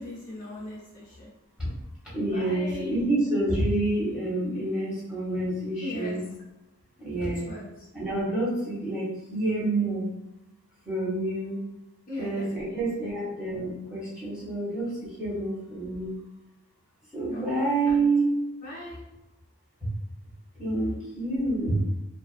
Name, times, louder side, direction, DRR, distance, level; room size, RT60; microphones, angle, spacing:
voice 1, 0.0-1.3 2.2-3.0 5.8-6.3 7.2-7.9 12.1-12.8 17.3-18.0 18.6-19.0, left 1 dB, 40° left, -7 dB, 0.6 m, -39 dB
voice 2, 2.1-6.2 7.0-7.6 7.9-10.1 10.9-11.5 12.2-14.9 15.2-16.1 17.1-18.3 20.6-21.8, right 2 dB, 5° right, -9 dB, 0.9 m, -28 dB
2.4 x 2.3 x 2.4 m, 0.96 s
head